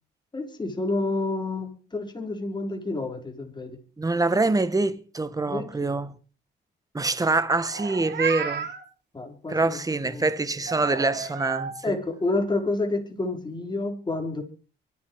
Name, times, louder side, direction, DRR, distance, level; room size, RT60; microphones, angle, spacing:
voice 1, 0.3-3.8 5.5-6.0 9.1-9.8 10.1-10.3 11.8-14.4, left 2 dB, 20° left, 4.7 m, -29 dB
voice 2, 4.0-6.2 6.9-8.7 9.5-12.0, right 3 dB, 15° right, 1.4 m, -25 dB
Meow, 7.7-8.8 10.7-11.7, right 7 dB, 60° right, 3.5 m, -32 dB
24.0 x 8.8 x 4.9 m
cardioid pair, 90°, 20 cm